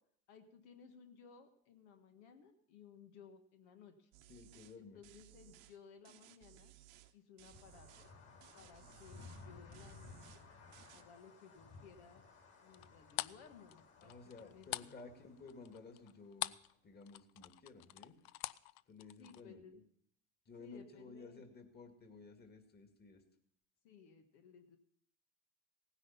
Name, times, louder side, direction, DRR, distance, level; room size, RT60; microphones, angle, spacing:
voice 1, 0.3-4.1 4.8-6.7 7.1-8.1 8.5-10.2 10.9-12.2 12.6-14.1 14.4-14.9 19.2-19.7 20.6-21.4 23.8-24.8, left 6 dB, 90° left, 6 dB, 1.6 m, -59 dB
sound 1, 4.1-4.8 5.0-5.8 6.0-7.1 7.4-8.1 8.4-9.5 9.7-10.4 10.7-11.0, right 14 dB, 85° right, 1.1 m, -61 dB
voice 2, 4.3-5.0 8.8-9.0 14.0-16.6 16.8-18.2 18.9-19.8 20.5-23.2, left 4 dB, 30° left, 6 dB, 2.2 m, -55 dB
sound 2, 7.5-16.3, left 4 dB, 45° left, 4.4 m, -58 dB
sound 3, 12.7-16.7 17.0-19.4, left 17 dB, 75° left, 0.5 m, -44 dB
17.0 x 9.8 x 5.7 m, 0.69 s
supercardioid pair, 110°, 34 cm